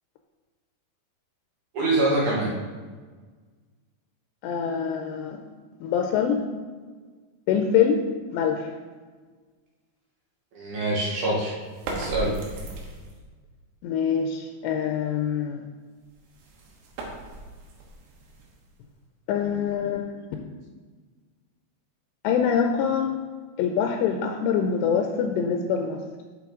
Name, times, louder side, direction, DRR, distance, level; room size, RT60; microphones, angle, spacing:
voice 1, 1.7-2.5 10.5-11.5 12.0-12.3, right 2 dB, 65° right, -4 dB, 2.0 m, -24 dB
voice 2, 4.4-5.4 5.8-6.4 7.5-8.0 8.3-8.7 13.8-15.6 19.3-20.5 22.2-23.1 23.6-26.0, left 7 dB, 85° left, 4 dB, 2.8 m, -24 dB
sound 1, 11.6-13.3 16.0-18.9, right 2 dB, 80° right, 3.4 m, -37 dB
9.1 x 6.2 x 3.7 m, 1.4 s
omnidirectional pair, 5.1 m